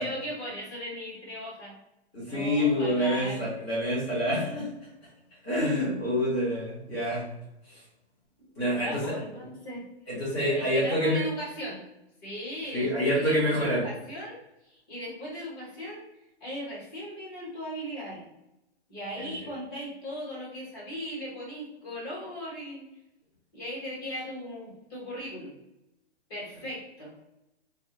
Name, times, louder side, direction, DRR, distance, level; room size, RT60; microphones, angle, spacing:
voice 1, 0.0-1.7 2.3-3.4 8.4-9.9 10.5-11.8 12.2-14.4 14.6-16.0 16.4-18.2 18.9-22.9 23.5-25.5 26.3-27.1, equal, 20° left, -6 dB, 1.0 m, -38 dB
voice 2, 2.1-4.7 5.4-7.3 8.6-9.1 10.1-11.2 12.7-13.8 19.2-19.3, equal, 5° right, -21 dB, 0.4 m, -27 dB
2.5 x 2.2 x 2.8 m, 0.93 s
hypercardioid pair, 175°, 33 cm